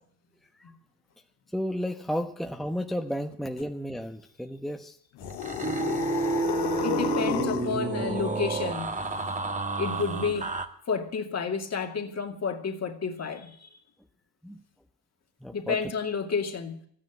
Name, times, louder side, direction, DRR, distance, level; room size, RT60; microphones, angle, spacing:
voice 1, 1.5-5.0 14.4-14.6 15.4-15.8, equal, ahead, 1.1 m, -32 dB
sound 1, 5.2-7.8, left 13 dB, 80° left, 1.3 m, -32 dB
sound 2, 5.2-10.7, right 4 dB, 20° right, 1.6 m, -30 dB
voice 2, 6.8-8.9 9.8-10.6 10.9-13.8 15.5-16.8, left 5 dB, 40° left, 2.4 m, -30 dB
14.0 x 9.9 x 8.2 m
supercardioid pair, 90°, 41 cm